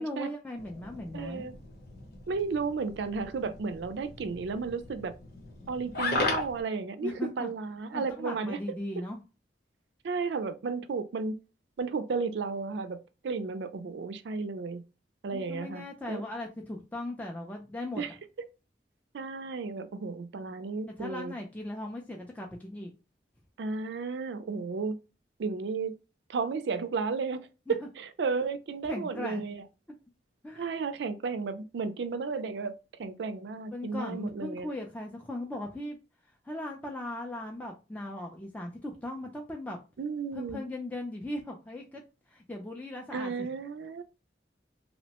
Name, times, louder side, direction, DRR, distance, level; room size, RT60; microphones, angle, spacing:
voice 1, 0.0-1.5 7.0-7.5 7.9-9.2 15.3-18.0 21.0-22.9 27.7-27.8 28.9-29.4 30.4-30.7 33.7-36.0 36.4-39.8 40.3-42.0 42.3-43.5, left 1 dB, 10° left, 0.4 m, -38 dB
sound 1, 0.6-6.6, left 3 dB, 60° left, 0.8 m, -37 dB
voice 2, 1.1-1.5 2.3-5.1 5.7-8.6 10.0-11.4 11.8-14.8 15.2-16.2 18.0-18.1 19.1-21.3 23.6-25.0 25.4-25.9 26.3-29.6 30.6-32.7 33.0-34.7 40.0-40.6 43.1-44.0, right 4 dB, 75° right, 0.4 m, -33 dB
2.9 x 2.1 x 2.8 m
head